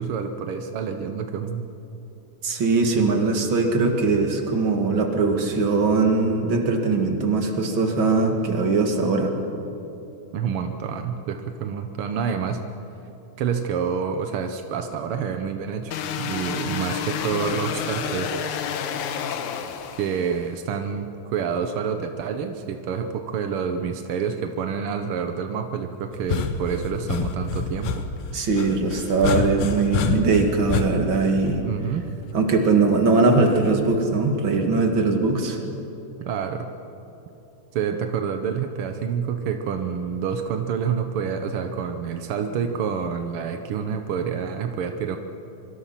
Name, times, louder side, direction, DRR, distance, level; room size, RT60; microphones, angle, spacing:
voice 1, 0.0-1.7 10.3-12.6 13.4-15.9 16.2-18.3 20.0-28.0 31.6-32.1 36.2-36.7 37.7-45.2, right 7 dB, 70° right, 6 dB, 1.3 m, -28 dB
voice 2, 2.4-9.3 28.3-31.6 32.3-35.6, right 3 dB, 40° right, 3 dB, 2.4 m, -21 dB
sound 1, 15.9-20.5, left 7 dB, 70° left, 2.4 m, -30 dB
sound 2, 26.1-32.2 33.6-34.0, left 5 dB, 90° left, 2.8 m, -28 dB
25.0 x 24.5 x 5.8 m, 2.9 s
omnidirectional pair, 3.7 m